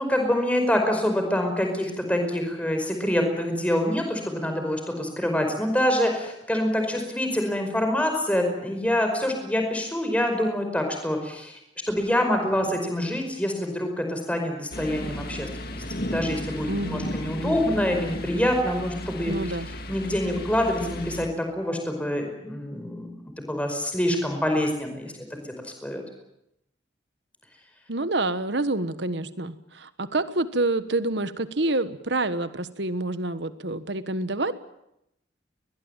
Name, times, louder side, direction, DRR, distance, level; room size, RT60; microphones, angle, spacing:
voice 1, 0.0-11.6 11.9-19.3 19.9-26.0, left 1 dB, 5° left, 4 dB, 5.1 m, -26 dB
sound 1, 14.7-21.3, left 1 dB, 55° left, 2.4 m, -34 dB
voice 2, 16.7-17.1 17.4-17.8 19.3-19.7 27.9-34.5, right 2 dB, 65° right, 12 dB, 1.4 m, -27 dB
22.0 x 21.0 x 9.0 m, 0.84 s
head